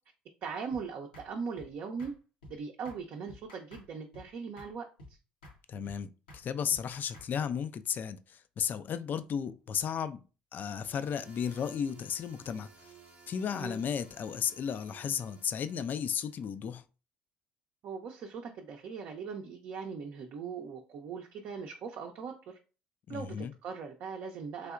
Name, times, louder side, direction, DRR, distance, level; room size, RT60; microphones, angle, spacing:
voice 1, 0.4-2.1 2.5-4.9 13.5-13.8 17.8-22.6 23.1-24.7, right 5 dB, 55° right, 0.6 m, -40 dB
sound 1, 0.7-0.8 1.1-1.3 1.6-1.7 2.0-2.1 2.4-2.6 2.8-3.0 3.3-3.9 4.1-4.3 4.6-4.7 5.0-5.1 5.4-5.6 5.8-6.0 6.3-6.4 6.7-7.3, left 1 dB, 85° left, 1.0 m, -51 dB
voice 2, 5.7-10.2 10.5-12.9 13.3-16.8 23.1-23.5, left 7 dB, 45° left, 0.4 m, -34 dB
sound 2, 10.7-16.5, right 4 dB, 35° right, 0.9 m, -57 dB
3.3 x 2.7 x 2.4 m
hypercardioid pair, 60°, 4 cm